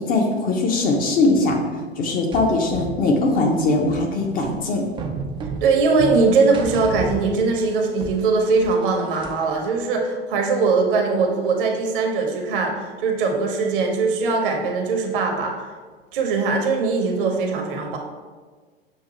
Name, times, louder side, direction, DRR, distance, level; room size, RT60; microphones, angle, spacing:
voice 1, 0.0-1.6 2.0-4.9, left 2 dB, 30° left, 1 dB, 0.6 m, -20 dB
sound 1, 2.3-7.8 8.0-9.6, right 3 dB, 15° right, 0.3 m, -32 dB
voice 2, 5.6-15.5 16.1-18.0, right 4 dB, 55° right, 2 dB, 0.9 m, -21 dB
6.5 x 2.4 x 2.8 m, 1.4 s
figure-of-eight pair, 90°, 31 cm